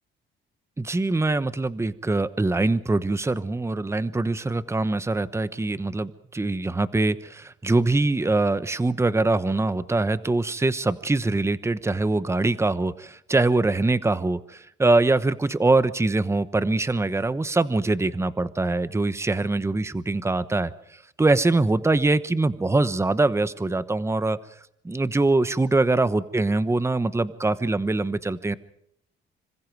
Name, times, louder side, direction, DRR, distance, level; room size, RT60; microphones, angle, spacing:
voice 1, 0.8-20.7 21.2-24.4 24.8-28.6, right 2 dB, 15° right, 14 dB, 1.0 m, -23 dB
27.0 x 25.0 x 4.8 m, 0.72 s
cardioid pair, 90°, 20 cm